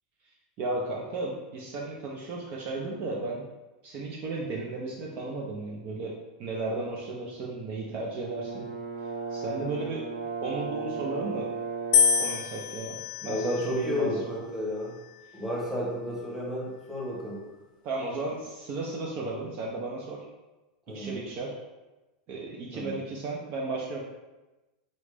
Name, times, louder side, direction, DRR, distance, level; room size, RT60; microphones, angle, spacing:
voice 1, 0.6-3.5 3.8-8.7 9.3-10.0 10.4-11.5 12.2-13.0 13.2-14.1 17.8-20.2 20.9-21.6 22.3-24.0, right 3 dB, 45° right, -2 dB, 0.6 m, -34 dB
Brass instrument, 8.2-12.4, right 4 dB, 80° right, 1.0 m, -35 dB
sound 1, 11.9-14.1 14.9-15.5, left 7 dB, 65° left, 0.4 m, -27 dB
voice 2, 13.3-14.9 15.3-17.4 20.9-21.2 22.7-23.0, left 1 dB, 10° right, -5 dB, 1.3 m, -32 dB
4.0 x 3.1 x 3.4 m, 1.1 s
supercardioid pair, 130°, 4 cm